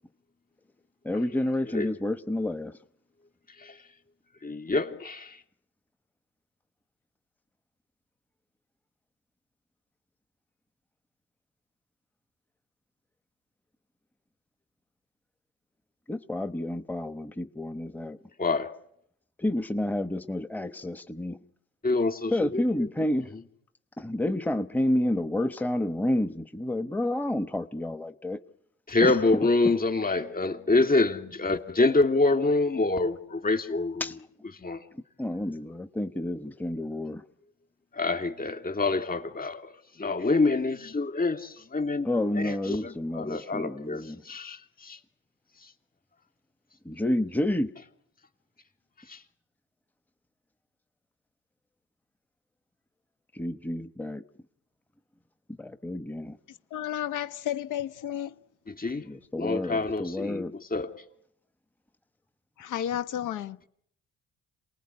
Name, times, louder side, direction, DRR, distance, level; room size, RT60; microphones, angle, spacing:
voice 1, 1.0-2.8 16.1-18.2 19.4-21.4 22.3-23.4 24.0-28.4 29.0-29.7 34.0-34.2 34.9-37.2 42.0-44.2 46.8-47.7 53.3-54.2 55.6-56.4 59.0-60.5, left 1 dB, 5° left, 1.0 m, -30 dB
voice 2, 4.4-5.4 18.4-18.7 21.8-22.6 28.9-34.0 34.6-34.8 37.9-39.7 40.0-42.1 42.3-45.0 49.1-49.2 58.7-59.0 59.4-60.9, left 3 dB, 30° left, 2.7 m, -26 dB
voice 3, 56.7-58.3 62.6-63.6, left 11 dB, 85° left, 1.2 m, -32 dB
28.0 x 19.5 x 9.7 m
cardioid pair, 90°, 30 cm